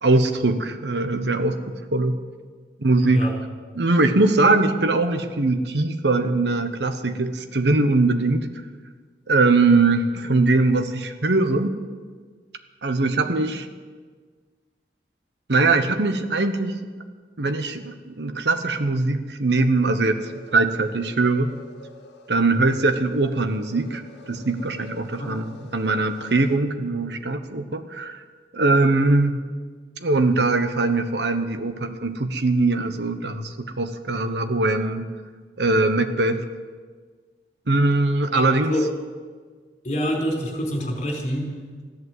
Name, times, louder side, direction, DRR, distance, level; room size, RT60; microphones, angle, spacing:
voice 1, 0.0-2.2 2.8-3.3 3.7-8.5 9.3-11.8 12.8-13.7 15.5-16.8 17.4-21.5 22.3-24.0 24.3-28.2 28.5-29.4 30.0-35.1 35.6-36.5 37.7-38.7, right 3 dB, 80° right, 8 dB, 1.1 m, -21 dB
sound 1, 20.1-26.6, left 1 dB, 80° left, 1.7 m, -47 dB
voice 2, 38.3-38.9 39.8-41.8, equal, 40° left, 0 dB, 4.3 m, -27 dB
15.0 x 11.0 x 8.0 m, 1.5 s
head